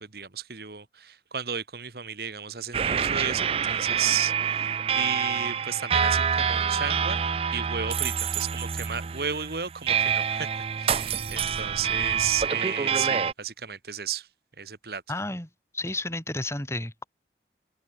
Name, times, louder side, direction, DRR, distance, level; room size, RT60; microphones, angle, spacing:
voice 1, 0.0-7.2 7.5-10.5 10.8-14.3 14.6-15.0, right 8 dB, 60° right, 1.4 m, -33 dB
sound 1, 2.7-13.3, right 7 dB, 30° right, 0.4 m, -27 dB
voice 2, 15.1-17.0, left 2 dB, 15° left, 6.2 m, -32 dB
open air
head